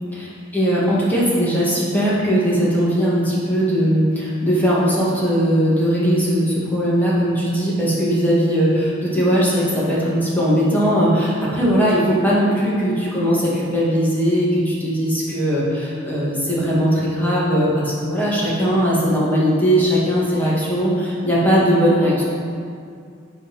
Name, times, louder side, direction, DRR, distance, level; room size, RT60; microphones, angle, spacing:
voice 1, 0.2-22.2, equal, 10° left, -8 dB, 1.8 m, -19 dB
8.4 x 4.1 x 5.7 m, 2.3 s
head